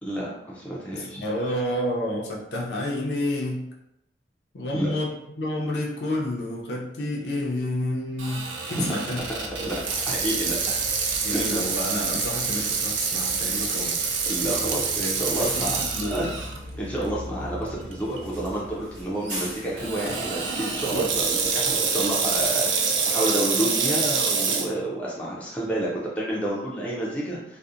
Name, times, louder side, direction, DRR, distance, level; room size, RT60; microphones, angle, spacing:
voice 1, 0.0-1.2 4.7-4.9 8.7-8.8 9.4-10.8 11.5-11.6 14.3-15.8 16.1-16.3 16.8-27.6, right 1 dB, 5° left, -5 dB, 0.4 m, -30 dB
voice 2, 0.9-3.7 4.5-9.2 11.2-13.9 15.4-16.3, left 1 dB, 65° left, -2 dB, 0.5 m, -29 dB
Water tap faucet / Sink (filling or washing), 8.2-16.6 17.1-17.2 17.9-18.2 19.8-24.7, right 5 dB, 80° right, 0.4 m, -26 dB
Bus, 9.2-22.5, equal, 45° right, 0.9 m, -41 dB
2.7 x 2.0 x 2.4 m, 0.81 s
head